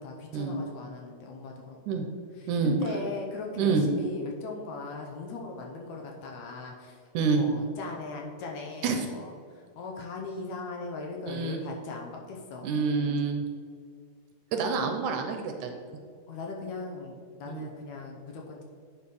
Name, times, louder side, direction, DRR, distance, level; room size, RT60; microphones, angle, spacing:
voice 1, 0.0-2.0 2.3-7.0 7.3-12.8 16.3-18.6, left 3 dB, 70° left, 0 dB, 2.0 m, -39 dB
voice 2, 11.3-11.6 12.6-13.4 14.5-15.8 17.5-17.7, right 5 dB, 75° right, 4 dB, 2.0 m, -27 dB
8.6 x 4.9 x 5.3 m, 2.1 s
omnidirectional pair, 3.9 m